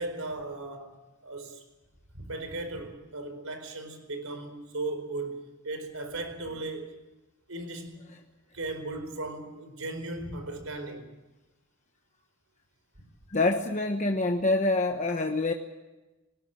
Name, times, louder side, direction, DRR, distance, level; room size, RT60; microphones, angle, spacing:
voice 1, 0.0-1.6 2.1-5.4 5.6-6.9 7.5-8.1 8.5-11.1, right 2 dB, 80° right, 4.7 m, -37 dB
voice 2, 13.3-15.5, left 2 dB, 35° left, 1.1 m, -26 dB
19.5 x 19.0 x 9.0 m
head